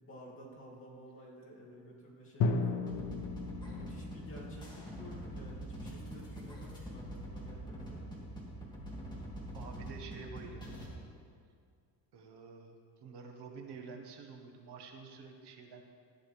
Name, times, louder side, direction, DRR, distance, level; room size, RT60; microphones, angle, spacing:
voice 1, 0.0-3.0 3.7-8.1, equal, 30° left, -5 dB, 2.6 m, -52 dB
Drum, 2.4-6.2, left 4 dB, 80° left, 0.9 m, -36 dB
sound 1, 2.9-10.9, right 1 dB, 10° left, 2.3 m, -44 dB
voice 2, 9.5-10.9 12.1-15.8, right 4 dB, 65° right, 3 dB, 1.5 m, -49 dB
15.5 x 10.0 x 3.4 m, 2.2 s
cardioid pair, 145°, 43 cm